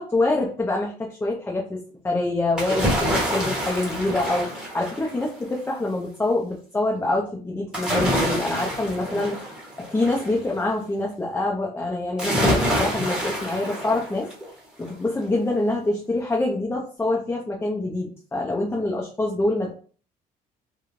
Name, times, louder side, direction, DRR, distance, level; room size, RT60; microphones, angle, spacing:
voice 1, 0.0-1.8 2.0-9.3 9.8-14.3 14.8-19.7, left 2 dB, 15° left, -2 dB, 0.6 m, -25 dB
sound 1, 2.6-5.4 7.7-10.4 12.2-14.5 14.9-15.0, equal, 5° right, 1.0 m, -26 dB
3.1 x 2.3 x 2.5 m, 0.40 s
cardioid pair, 110°, 17 cm